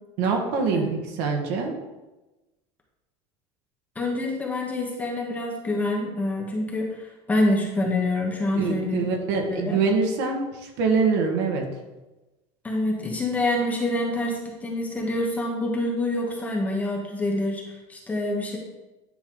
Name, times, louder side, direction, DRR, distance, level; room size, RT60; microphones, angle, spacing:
voice 1, 0.2-1.7 8.5-11.6, right 4 dB, 60° right, 2 dB, 1.6 m, -24 dB
voice 2, 3.9-9.1 9.5-9.8 12.6-18.6, left 1 dB, 10° left, -1 dB, 1.0 m, -26 dB
10.0 x 5.7 x 3.8 m, 1.1 s
cardioid pair, 180°, 15 cm